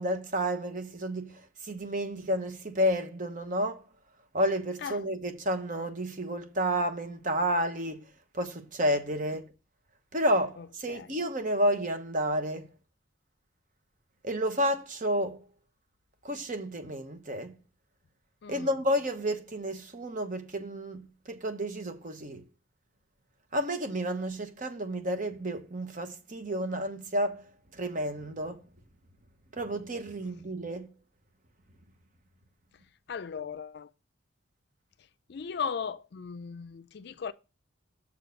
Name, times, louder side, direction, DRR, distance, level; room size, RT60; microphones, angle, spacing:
voice 1, 0.0-3.8 4.3-8.0 8.3-9.4 10.1-12.7 14.2-15.4 16.2-17.5 18.5-22.4 23.5-27.4 27.7-28.6 29.5-30.9, equal, 40° right, 1.0 m, -31 dB
voice 2, 10.6-11.2 18.4-18.7 33.1-33.9 35.3-37.3, left 6 dB, 55° left, 0.4 m, -37 dB
7.0 x 4.5 x 6.4 m
head